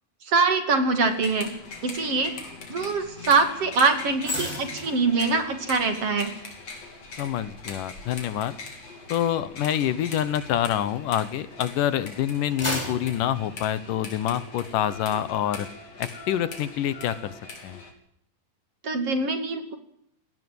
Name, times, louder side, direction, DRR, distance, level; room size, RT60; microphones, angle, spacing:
voice 1, 0.3-1.5 1.8-2.3 2.7-6.3 18.8-19.8, right 4 dB, 45° right, 7 dB, 3.3 m, -23 dB
sound 1, 1.0-17.9, left 4 dB, 45° left, 4.7 m, -42 dB
sound 2, 4.2-11.6 12.1-14.4 14.8-15.0, left 1 dB, 5° left, 7.0 m, -38 dB
voice 2, 7.2-8.5 9.1-15.7 16.0-17.3 17.6-17.8, left 11 dB, 75° left, 15 dB, 2.5 m, -26 dB
18.5 x 18.5 x 9.4 m, 0.69 s
omnidirectional pair, 4.0 m